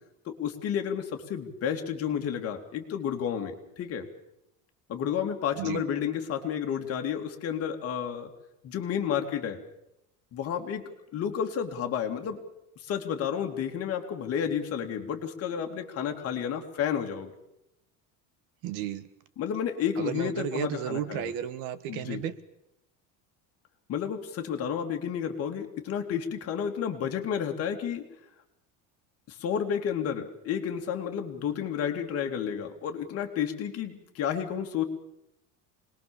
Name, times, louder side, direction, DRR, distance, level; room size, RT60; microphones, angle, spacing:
voice 1, 0.2-4.1 4.9-8.3 8.6-9.6 10.3-10.8 11.1-12.4 12.8-17.3 19.4-21.3 21.9-22.2 23.9-28.0 29.3-34.8, left 8 dB, 40° left, 4 dB, 2.9 m, -31 dB
voice 2, 18.6-19.1 20.0-22.3, right 10 dB, 65° right, 13 dB, 1.7 m, -33 dB
26.0 x 21.0 x 7.2 m, 0.85 s
cardioid pair, 165°, 37 cm